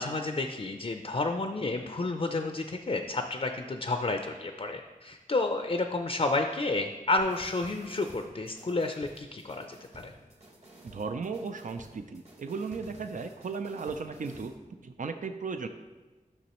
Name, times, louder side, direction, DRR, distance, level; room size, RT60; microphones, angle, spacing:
voice 1, 0.0-9.8 10.0-10.1, left 2 dB, 45° left, 5 dB, 0.5 m, -30 dB
sound 1, 7.2-14.6, right 1 dB, 50° right, 1.5 m, -52 dB
voice 2, 10.9-14.5 14.8-15.7, right 4 dB, 65° right, 7 dB, 0.4 m, -36 dB
11.5 x 6.1 x 3.0 m, 1.3 s
wide cardioid pair, 70°, 14 cm